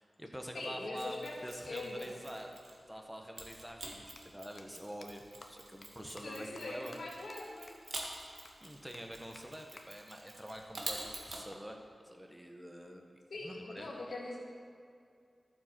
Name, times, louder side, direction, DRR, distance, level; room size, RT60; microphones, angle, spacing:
voice 1, 0.0-1.2 1.4-2.6 2.9-7.0 8.6-11.8 12.0-13.1 13.4-13.9, equal, 5° right, 2 dB, 1.3 m, -46 dB
voice 2, 0.5-1.3 1.6-2.2 6.2-7.7 13.3-14.4, left 2 dB, 80° left, -3 dB, 1.9 m, -42 dB
Mechanisms, 0.9-2.9 3.4-11.4, right 2 dB, 75° right, 1.6 m, -47 dB
sound 1, 4.2-4.3 4.6-4.7 5.0-5.1 5.4-5.5 5.8-5.9 6.2-6.3 6.6-6.7 6.9-7.0 7.3-7.4 7.7-7.8 8.0-8.1 8.4-8.5 8.9-9.0 9.4-9.5 9.8-9.9 11.5-12.5, left 3 dB, 55° left, 0.9 m, -55 dB
12.5 x 7.2 x 4.7 m, 2.3 s
cardioid pair, 55°, 0 cm